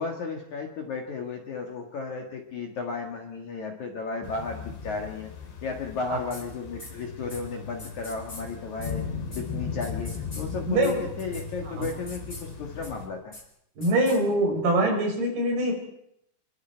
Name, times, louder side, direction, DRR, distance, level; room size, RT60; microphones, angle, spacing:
voice 1, 0.0-5.3 5.6-9.1 9.3-13.4, left 4 dB, 55° left, 2 dB, 2.5 m, -34 dB
sound 1, 4.2-13.1, left 5 dB, 75° left, 5.5 m, -37 dB
sound 2, 6.3-6.4 6.8-6.9 7.3-7.4 7.8-8.4 8.8-8.9 9.3-9.4 9.8-10.4 10.8-10.9 11.2-11.4 11.8-12.4 12.8-12.9 13.3-13.4 13.8-14.2, left 2 dB, 15° left, 5.2 m, -42 dB
voice 2, 13.8-15.7, right 1 dB, 60° right, 2 dB, 6.7 m, -23 dB
28.0 x 22.0 x 4.6 m, 0.74 s
omnidirectional pair, 5.2 m